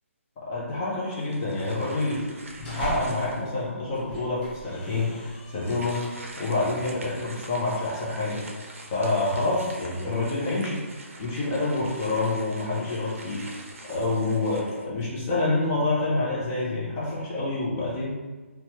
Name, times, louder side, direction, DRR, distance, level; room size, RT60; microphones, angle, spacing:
voice 1, 0.5-2.3 2.6-6.1 6.4-8.4 8.9-10.8 11.2-13.6 13.9-18.1, left 2 dB, 15° left, -6 dB, 0.4 m, -27 dB
sound 1, 1.1-3.6 4.2-4.3 5.5-15.3, right 2 dB, 70° right, 0.6 m, -45 dB
sound 2, 2.3-3.4 3.9-6.7, right 1 dB, 40° left, 0.8 m, -40 dB
2.9 x 2.2 x 2.8 m, 1.3 s
hypercardioid pair, 175°, 8 cm